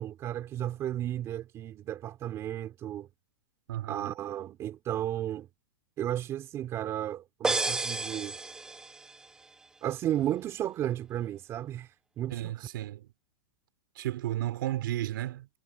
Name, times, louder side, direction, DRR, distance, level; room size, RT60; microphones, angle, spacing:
voice 1, 0.0-3.1 3.9-5.5 6.0-8.4 9.8-11.9 12.2-12.5, right 12 dB, 20° right, 3.2 m, -33 dB
voice 2, 3.7-4.1 12.3-13.1 13.9-15.5, right 14 dB, 65° right, 4.3 m, -33 dB
sound 1, 7.4-9.2, right 3 dB, 5° right, 0.9 m, -31 dB
supercardioid pair, 165°, 12 cm